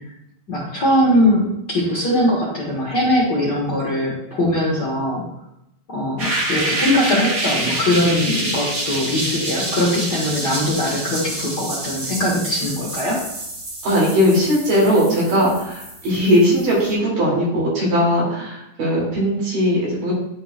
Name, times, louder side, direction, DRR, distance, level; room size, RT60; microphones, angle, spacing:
voice 1, 0.5-5.2 5.9-13.2, left 1 dB, 45° left, -5 dB, 1.5 m, -21 dB
sound 1, 6.2-16.9, right 1 dB, 50° right, 1.0 m, -27 dB
voice 2, 13.8-20.1, equal, 90° right, -5 dB, 4.5 m, -18 dB
11.5 x 4.8 x 2.4 m, 0.80 s
omnidirectional pair, 3.7 m